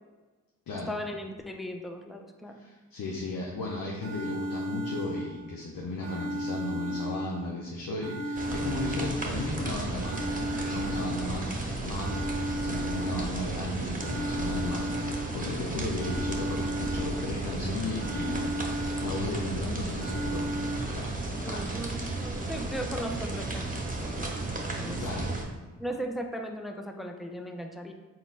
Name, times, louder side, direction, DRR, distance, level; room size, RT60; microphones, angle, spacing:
voice 1, 0.7-2.6 21.4-25.0 25.8-27.9, equal, ahead, 4 dB, 0.4 m, -38 dB
voice 2, 2.5-20.4 20.7-21.1 21.5-21.8 25.0-25.3, left 2 dB, 75° left, -2 dB, 0.7 m, -35 dB
sound 1, 3.6-3.7 4.0-5.6 6.0-7.6 8.0-9.6 10.0-11.6 12.0-13.6 14.0-15.6 16.0-17.6 18.0-19.6 20.0-20.8, equal, 65° right, 0.7 m, -35 dB
sound 2, 8.4-25.4, right 2 dB, 25° right, 0.9 m, -34 dB
4.2 x 3.8 x 2.4 m, 1.3 s
supercardioid pair, 45°, 34 cm